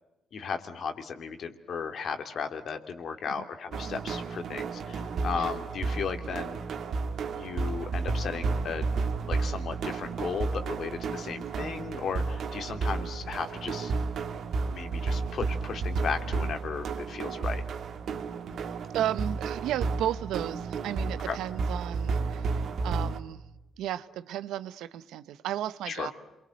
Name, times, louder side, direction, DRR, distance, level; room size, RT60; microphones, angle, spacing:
voice 1, 0.3-6.6 7.3-8.9 9.3-13.9 14.7-17.6 21.3-21.4 25.9-26.1, left 6 dB, 60° left, 2.9 m, -35 dB
sound 1, 3.7-23.2, right 4 dB, 65° right, 2.2 m, -32 dB
voice 2, 18.9-23.4 23.8-26.1, right 12 dB, 85° right, 1.0 m, -34 dB
28.0 x 23.5 x 7.8 m
cardioid pair, 90°, 0 cm